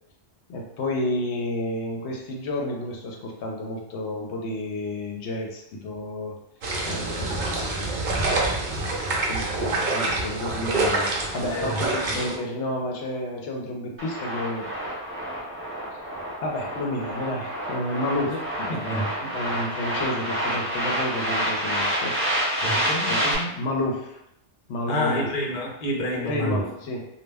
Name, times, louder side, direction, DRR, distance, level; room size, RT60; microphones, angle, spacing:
voice 1, 0.5-6.3 6.8-8.0 9.3-14.7 16.4-19.0 19.3-22.2 23.0-23.3 23.6-24.2 24.7-25.3 26.1-27.1, left 1 dB, 80° left, 0 dB, 0.8 m, -30 dB
sound 1, 6.6-12.4, right 2 dB, 55° right, 0.6 m, -26 dB
voice 2, 11.5-11.9 18.2-19.3 22.6-23.6 24.9-26.7, equal, 50° left, -1 dB, 0.6 m, -29 dB
sound 2, 14.0-23.3, equal, 15° right, 0.6 m, -28 dB
2.2 x 2.1 x 3.3 m, 0.81 s
omnidirectional pair, 1.1 m